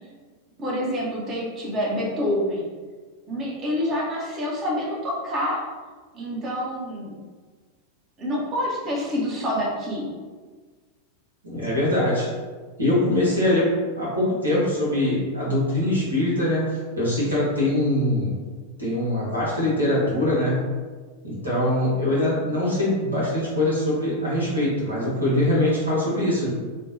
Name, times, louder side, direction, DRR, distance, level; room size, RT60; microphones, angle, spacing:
voice 1, 0.6-2.7 3.3-5.6 6.1-7.1 8.2-10.1, equal, 30° right, -4 dB, 0.8 m, -27 dB
voice 2, 11.4-12.3 12.8-18.4 18.8-20.7 21.2-26.5, left 1 dB, 80° right, -7 dB, 1.2 m, -23 dB
3.4 x 2.2 x 2.6 m, 1.4 s
figure-of-eight pair, 90°, 0 cm